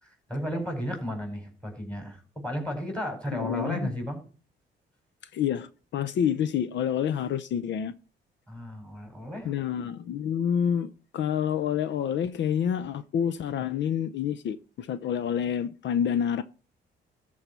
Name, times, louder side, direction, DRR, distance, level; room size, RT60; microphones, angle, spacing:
voice 1, 0.0-4.2 8.5-9.5, equal, 5° left, 5.0 m, -34 dB
voice 2, 3.3-3.9 5.3-7.9 9.4-16.4, left 8 dB, 65° left, 0.6 m, -28 dB
13.0 x 4.7 x 6.8 m
cardioid pair, 90°, 20 cm